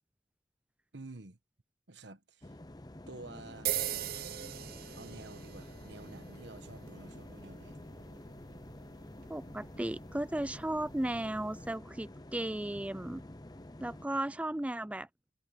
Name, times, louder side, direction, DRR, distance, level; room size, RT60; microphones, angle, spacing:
voice 1, 0.9-1.4 1.9-2.5 3.1-3.8 5.0-7.8, right 2 dB, 75° right, 1.4 m, -50 dB
sound 1, 2.4-14.1, left 1 dB, 20° left, 0.7 m, -49 dB
sound 2, 3.7-11.8, right 11 dB, 55° right, 0.8 m, -42 dB
voice 2, 9.3-13.2 13.8-15.1, right 1 dB, 5° right, 0.4 m, -35 dB
head